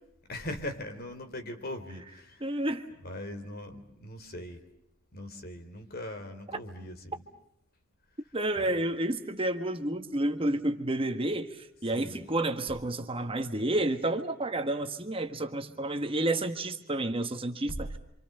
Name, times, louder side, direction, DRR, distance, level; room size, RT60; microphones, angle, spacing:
voice 1, 0.3-2.5 3.0-4.6 5.1-7.2 8.5-8.8 11.9-12.2, left 1 dB, 50° left, 7 dB, 3.5 m, -40 dB
voice 2, 2.4-2.8 8.3-17.9, right 1 dB, 30° right, 7 dB, 1.5 m, -30 dB
29.0 x 26.5 x 6.7 m, 0.78 s
head